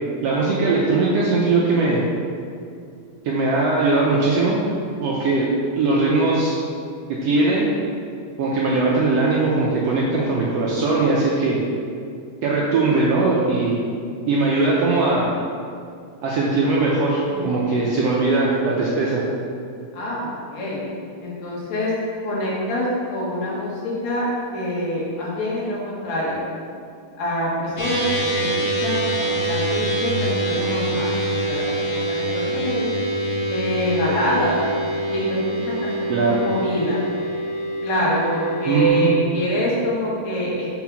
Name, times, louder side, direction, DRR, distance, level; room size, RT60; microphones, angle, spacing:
voice 1, 0.2-2.0 3.2-4.6 5.0-5.5 5.8-6.6 7.1-7.6 8.4-11.6 12.4-13.8 14.3-15.3 16.2-19.2 36.1-36.4 38.6-39.1, right 3 dB, 75° right, -4 dB, 1.6 m, -20 dB
voice 2, 17.3-17.8 19.9-20.9 21.2-21.9 22.2-24.2 24.5-26.4 27.2-32.9 33.5-34.6 35.1-37.0 37.8-40.7, equal, 60° left, -6 dB, 2.6 m, -25 dB
sound 1, 27.8-38.9, right 1 dB, 40° left, 1.1 m, -25 dB
5.8 x 4.7 x 6.0 m, 2.3 s
omnidirectional pair, 3.6 m